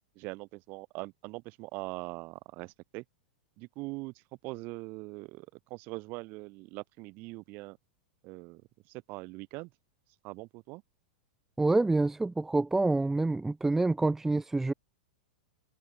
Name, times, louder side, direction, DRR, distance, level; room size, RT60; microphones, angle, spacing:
voice 1, 0.1-3.0 3.6-7.8 8.2-8.6 8.9-9.7 10.2-10.8, right 24 dB, 45° right, 2.7 m, -42 dB
voice 2, 11.6-14.7, right 2 dB, 5° right, 0.7 m, -27 dB
hypercardioid pair, 105°, 5 cm